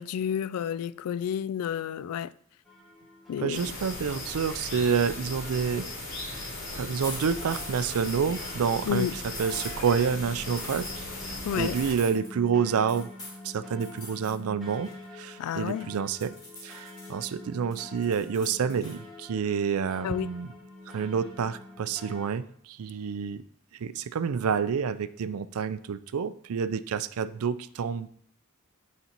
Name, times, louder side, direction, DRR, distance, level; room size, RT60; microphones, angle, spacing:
voice 1, 0.0-2.3 3.3-3.7 8.9-9.2 11.4-11.8 15.4-15.9 20.0-20.3, left 8 dB, 90° left, 0.3 m, -30 dB
sound 1, 2.6-22.3, left 2 dB, ahead, 1.5 m, -47 dB
voice 2, 3.4-5.9 6.7-9.1 9.4-13.1 13.4-16.3 16.6-20.5 20.9-23.4 23.8-28.1, right 6 dB, 75° right, 0.4 m, -28 dB
sound 2, 3.5-11.9, left 2 dB, 55° left, 2.9 m, -37 dB
sound 3, 7.0-8.6 9.3-9.8 10.6-10.9 11.8-12.3 12.9-13.4 13.8-14.4 14.7-15.8 16.2-17.3 17.7-19.0, left 1 dB, 20° left, 2.4 m, -43 dB
8.1 x 4.2 x 4.4 m
head